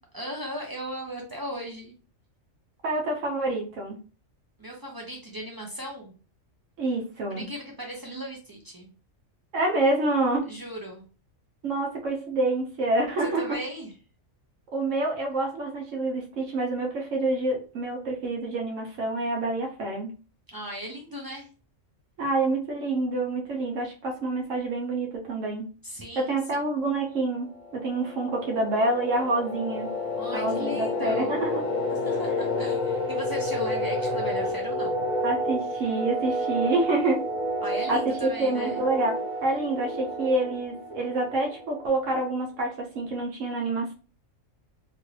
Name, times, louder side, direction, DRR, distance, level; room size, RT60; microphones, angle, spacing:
voice 1, 0.1-1.9 4.6-6.1 7.3-8.9 10.5-11.0 13.2-13.9 20.5-21.5 25.8-26.4 30.2-31.4 31.9-35.0 37.6-38.8, equal, 35° right, -1 dB, 0.3 m, -37 dB
voice 2, 2.8-4.0 6.8-7.5 9.5-10.5 11.6-13.6 14.7-20.1 22.2-25.7 26.2-29.9 30.3-31.6 35.2-37.2 37.9-39.1 39.4-43.9, right 2 dB, 70° right, 0 dB, 1.1 m, -27 dB
sound 1, 27.5-42.0, left 1 dB, 40° left, 0.9 m, -30 dB
3.0 x 2.5 x 3.1 m, 0.36 s
omnidirectional pair, 1.4 m